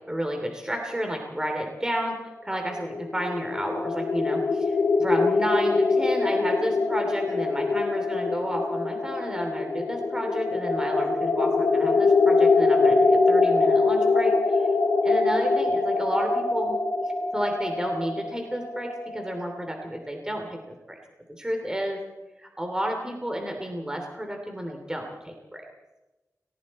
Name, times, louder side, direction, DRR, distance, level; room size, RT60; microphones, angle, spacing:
voice 1, 0.1-2.2 2.4-13.0 13.3-14.7 15.0-16.8 17.3-21.0 21.4-22.0 22.4-25.6, equal, 10° right, 2 dB, 3.0 m, -31 dB
sound 1, 2.7-19.5, left 3 dB, 85° left, 3.2 m, -23 dB
30.0 x 20.5 x 4.3 m, 1.1 s
wide cardioid pair, 110°, 6 cm